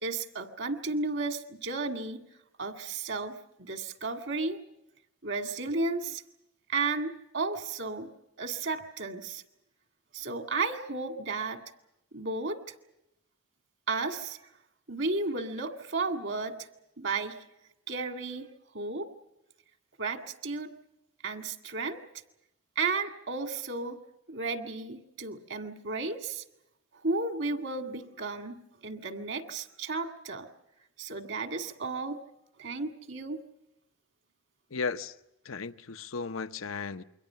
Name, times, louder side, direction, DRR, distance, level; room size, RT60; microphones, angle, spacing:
voice 1, 0.0-2.2 2.6-4.6 5.2-6.2 6.7-8.1 8.4-9.4 10.1-11.6 12.1-12.7 13.9-14.4 14.9-16.7 17.0-17.4 17.9-18.5 18.7-19.1 20.0-20.7 21.2-22.0 22.8-24.0 24.3-26.4 26.9-30.5 31.0-32.2 32.6-33.4, right 3 dB, 60° right, 2.0 m, -33 dB
voice 2, 34.7-35.1 35.4-37.0, left 4 dB, 80° left, 0.8 m, -35 dB
28.5 x 23.0 x 5.7 m
head